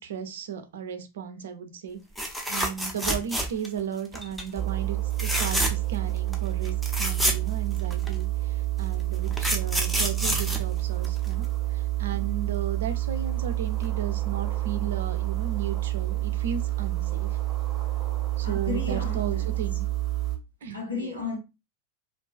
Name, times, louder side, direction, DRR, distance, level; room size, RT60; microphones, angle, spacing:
voice 1, 0.0-17.4 18.4-19.9 20.6-21.2, right 8 dB, 60° right, 0.4 m, -35 dB
sound 1, 2.2-3.8 4.1-4.5 5.1-6.0 6.3-6.4 6.6-8.1 8.9-11.5 13.4-13.5 13.8-13.9, equal, ahead, 0.5 m, -28 dB
sound 2, 4.6-20.4, right 17 dB, 25° right, 0.8 m, -28 dB
voice 2, 18.4-19.8 20.7-21.4, left 4 dB, 80° left, 1.0 m, -34 dB
2.3 x 2.3 x 2.3 m
figure-of-eight pair, 90°, 0 cm